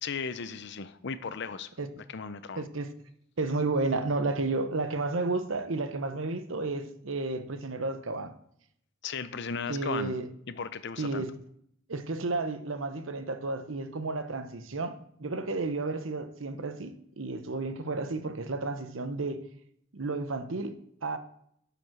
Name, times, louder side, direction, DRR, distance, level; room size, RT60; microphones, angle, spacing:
voice 1, 0.0-1.7 2.1-2.6 9.0-10.2 10.5-11.2, left 5 dB, 60° left, 0.7 m, -36 dB
voice 2, 2.6-2.9 3.4-8.3 9.7-10.3 11.0-11.3 11.9-19.4 19.9-20.7 21.0-21.2, right 3 dB, 80° right, 0.9 m, -32 dB
10.5 x 5.2 x 6.2 m
head